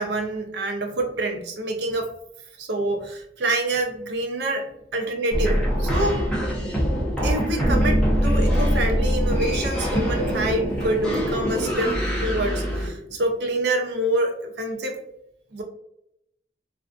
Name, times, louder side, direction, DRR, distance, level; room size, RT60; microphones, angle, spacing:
voice 1, 0.0-2.1 2.6-6.3 7.2-15.0 15.5-15.6, right 1 dB, 70° right, 3 dB, 0.5 m, -26 dB
sound 1, 5.3-12.9, equal, 5° left, 0.7 m, -23 dB
2.5 x 2.4 x 2.3 m, 0.77 s
head